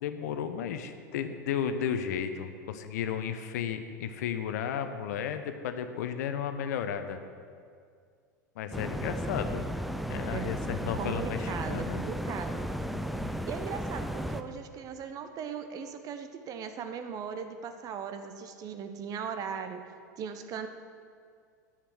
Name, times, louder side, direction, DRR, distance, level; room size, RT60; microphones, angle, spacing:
voice 1, 0.0-7.2 8.6-9.6 10.1-12.0, left 8 dB, 60° left, 9 dB, 0.8 m, -33 dB
sound 1, 8.7-14.4, equal, ahead, 0.5 m, -34 dB
voice 2, 10.9-12.7 13.5-19.8 20.2-20.7, right 7 dB, 35° right, 8 dB, 0.9 m, -38 dB
10.0 x 7.5 x 6.2 m, 2.2 s
figure-of-eight pair, 85°, 10 cm